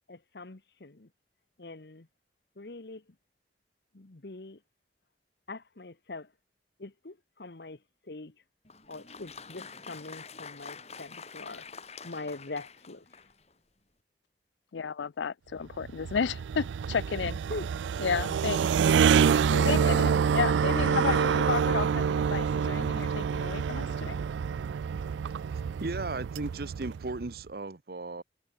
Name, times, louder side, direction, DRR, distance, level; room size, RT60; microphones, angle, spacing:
voice 1, 0.1-1.1 1.6-2.1 2.6-3.0 3.9-4.6 5.5-6.3 6.8-7.8 8.1-8.3 8.9-11.6 12.0-13.0 17.5-17.7 19.5-19.9, left 2 dB, 65° left, 1.1 m, -42 dB
Applause, 8.6-13.5, left 5 dB, 35° left, 5.8 m, -46 dB
voice 2, 14.7-17.4 18.0-18.7 19.7-24.2, left 6 dB, 85° left, 0.5 m, -32 dB
sound 1, 15.7-27.3, right 7 dB, 90° right, 0.3 m, -27 dB
voice 3, 25.8-28.2, right 3 dB, 55° right, 0.9 m, -36 dB
head